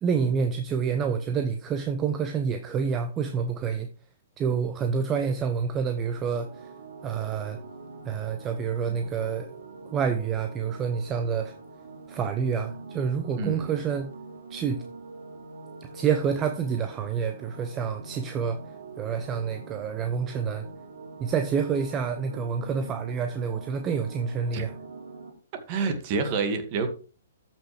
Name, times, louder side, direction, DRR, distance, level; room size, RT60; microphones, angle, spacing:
voice 1, 0.0-3.9 4.4-6.7 7.0-7.6 8.0-9.5 9.9-11.5 12.1-14.2 14.5-14.8 15.8-18.6 19.0-20.7 21.2-24.7, right 6 dB, 20° right, 7 dB, 0.8 m, -28 dB
sound 1, 5.9-25.3, right 3 dB, 70° right, 2.6 m, -44 dB
voice 2, 13.4-13.7 24.5-24.7 25.7-26.9, right 4 dB, 35° right, 7 dB, 2.0 m, -28 dB
14.0 x 5.9 x 3.4 m, 0.38 s
figure-of-eight pair, 120°, 0 cm